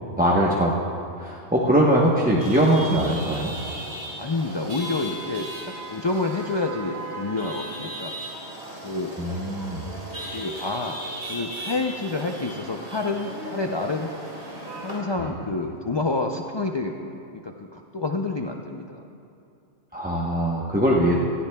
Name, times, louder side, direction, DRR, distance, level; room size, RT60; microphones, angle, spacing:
voice 1, 0.2-0.7 1.2-3.5 9.2-9.8 15.2-15.3 19.9-21.1, right 1 dB, 10° right, -5 dB, 0.8 m, -21 dB
Chatter / Vehicle horn car horn honking / Traffic noise roadway noise, 2.4-15.0, right 1 dB, 55° right, 2.6 m, -36 dB
voice 2, 4.2-5.5 5.9-8.1 8.8-9.2 10.3-11.0 11.3-14.1 14.8-17.2 17.4-19.0, left 3 dB, 45° left, 3 dB, 0.3 m, -28 dB
17.5 x 15.0 x 2.3 m, 2.7 s
omnidirectional pair, 1.2 m